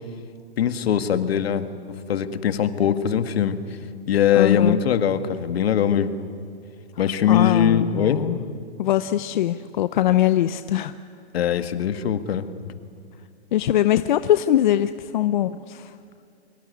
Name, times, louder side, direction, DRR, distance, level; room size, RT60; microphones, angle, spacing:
voice 1, 0.6-1.7 2.1-3.6 4.1-6.1 7.0-8.2 11.3-12.4, left 9 dB, 65° left, 9 dB, 1.9 m, -21 dB
voice 2, 4.3-4.8 7.3-8.4 8.8-10.9 13.5-15.9, left 12 dB, 45° left, 12 dB, 0.7 m, -22 dB
24.5 x 22.5 x 9.6 m, 2.3 s
hypercardioid pair, 160°, 34 cm